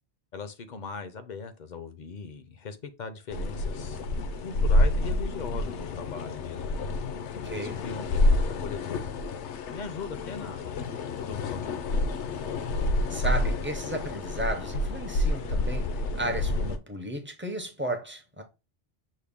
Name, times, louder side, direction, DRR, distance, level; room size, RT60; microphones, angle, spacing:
voice 1, 0.3-4.0 4.4-6.7 7.5-9.1 9.7-10.7 11.2-12.2, left 5 dB, 50° left, 0.6 m, -40 dB
sound 1, 3.3-16.8, left 1 dB, 75° left, 0.9 m, -28 dB
voice 2, 7.4-7.8 13.1-18.4, right 1 dB, 15° right, 0.4 m, -34 dB
6.3 x 2.1 x 3.4 m
omnidirectional pair, 1.2 m